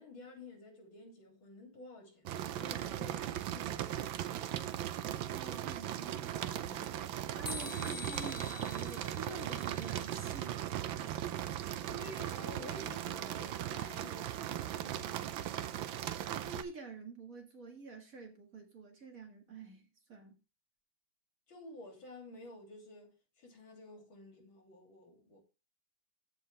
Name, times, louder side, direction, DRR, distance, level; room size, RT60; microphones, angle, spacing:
voice 1, 0.0-4.4 11.9-15.6 21.5-25.4, left 1 dB, 80° left, 3.9 m, -52 dB
sound 1, 2.2-16.6, right 11 dB, 80° right, 1.5 m, -38 dB
voice 2, 5.3-7.0 7.3-10.7 16.4-20.4, right 3 dB, 45° right, 2.3 m, -48 dB
sound 2, 7.5-10.5, left 4 dB, 20° left, 0.5 m, -47 dB
15.0 x 5.0 x 3.4 m
omnidirectional pair, 2.2 m